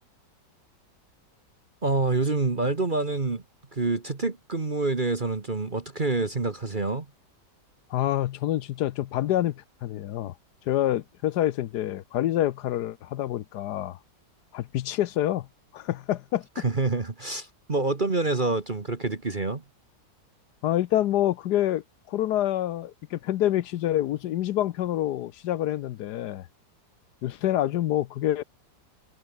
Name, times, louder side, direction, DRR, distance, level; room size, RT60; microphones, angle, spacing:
voice 1, 1.8-3.4 3.7-7.1 16.6-19.6, right 3 dB, 30° right, 1.6 m, -27 dB
voice 2, 7.9-10.3 10.7-14.0 14.5-15.5 15.7-16.5 20.6-26.5 27.2-28.4, left 13 dB, 75° left, 1.2 m, -27 dB
omnidirectional pair, 1.9 m